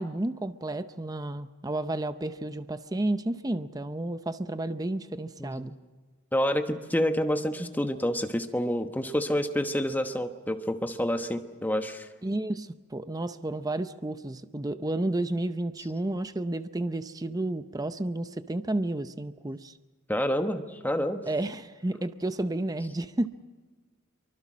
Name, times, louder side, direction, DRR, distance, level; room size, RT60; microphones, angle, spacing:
voice 1, 0.0-5.8 12.2-19.7 21.3-23.3, right 1 dB, 15° right, 11 dB, 0.7 m, -31 dB
voice 2, 6.3-12.0 20.1-21.2, equal, 10° left, 6 dB, 1.1 m, -28 dB
24.5 x 24.0 x 6.2 m, 1.4 s
head